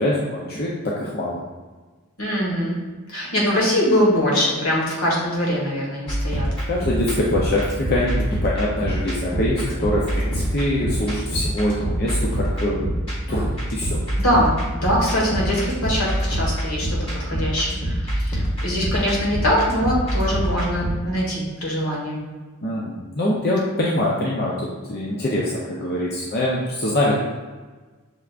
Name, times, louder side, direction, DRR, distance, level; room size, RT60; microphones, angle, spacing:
voice 1, 0.0-1.4 6.7-12.9 13.3-14.0 22.6-27.1, left 1 dB, 45° left, -4 dB, 0.5 m, -24 dB
voice 2, 2.2-2.8 3.1-6.5 14.2-22.2, equal, 75° left, -3 dB, 1.4 m, -22 dB
sound 1, 6.1-20.9, equal, 25° left, 1.1 m, -25 dB
6.1 x 3.4 x 2.4 m, 1.3 s
head